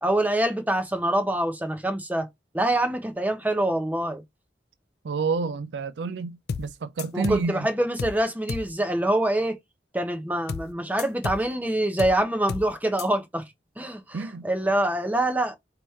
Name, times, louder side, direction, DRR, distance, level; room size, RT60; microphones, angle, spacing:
voice 1, 0.0-2.3 2.5-4.2 7.1-9.6 9.9-13.4 13.8-15.6, right 1 dB, 10° right, 0.8 m, -25 dB
voice 2, 5.0-7.7 14.1-14.5, right 4 dB, 85° right, 0.4 m, -29 dB
sound 1, 6.5-6.7 7.0-7.5 8.0-8.2 8.5-8.7 10.5-10.7 11.0-11.5 12.0-12.2 12.5-12.7 13.0-13.1, left 5 dB, 60° left, 0.4 m, -32 dB
5.3 x 2.9 x 3.2 m
head